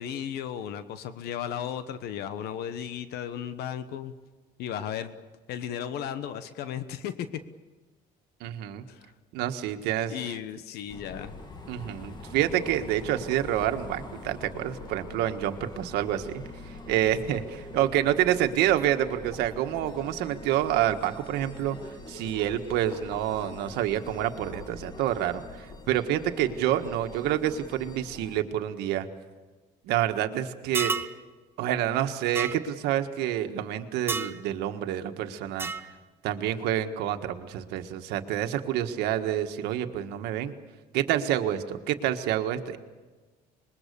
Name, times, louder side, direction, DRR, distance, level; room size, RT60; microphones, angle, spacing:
voice 1, 0.0-4.1 4.6-5.1 5.5-7.4 8.9-9.1 10.1-11.3, left 9 dB, 75° left, 12 dB, 1.2 m, -35 dB
voice 2, 8.4-8.8 9.3-10.1 11.7-16.4 16.9-21.8 22.1-29.1 29.8-30.9 31.6-35.7 36.2-40.5 40.9-42.8, right 11 dB, 90° right, 7 dB, 1.6 m, -28 dB
sound 1, 10.9-28.4, left 2 dB, 25° left, 1.9 m, -44 dB
sound 2, 30.7-31.1 32.3-32.5 34.1-34.4 35.6-35.9, right 4 dB, 15° right, 0.8 m, -30 dB
26.0 x 21.5 x 6.9 m, 1.3 s
cardioid pair, 135°, 17 cm